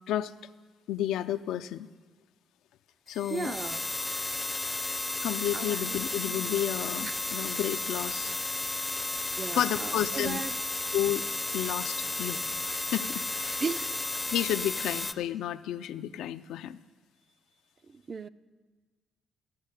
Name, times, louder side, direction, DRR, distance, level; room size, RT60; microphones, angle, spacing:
voice 1, 0.9-1.9 3.1-3.5 5.2-8.3 9.5-10.4 10.9-11.2 11.5-12.4 12.7-13.6 14.3-16.8, left 11 dB, 85° left, 11 dB, 0.4 m, -31 dB
sound 1, 3.1-15.1, left 2 dB, 15° left, 0.5 m, -33 dB
voice 2, 3.3-3.8 5.5-6.0 9.4-10.5 13.6-14.0 17.9-18.3, right 5 dB, 40° right, 13 dB, 0.4 m, -36 dB
15.0 x 5.5 x 8.3 m, 1.4 s
cardioid pair, 90°, 0 cm